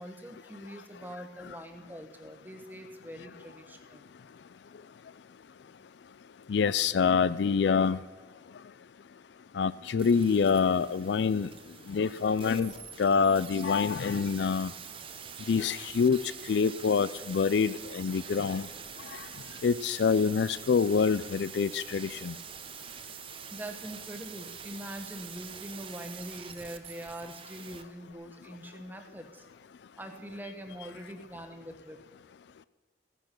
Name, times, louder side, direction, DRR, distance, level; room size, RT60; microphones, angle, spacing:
voice 1, 0.0-4.1 23.5-29.5 30.0-32.0, equal, 10° right, 4 dB, 1.3 m, -43 dB
voice 2, 6.5-8.0 9.5-11.5 11.9-12.7 13.0-14.7 15.5-16.2 16.4-18.7 19.0-19.3 19.6-22.4, left 5 dB, 75° left, 17 dB, 0.4 m, -26 dB
sound 1, 10.0-27.8 28.1-28.2, right 7 dB, 30° right, 0.7 m, -45 dB
15.5 x 10.0 x 6.0 m, 1.4 s
head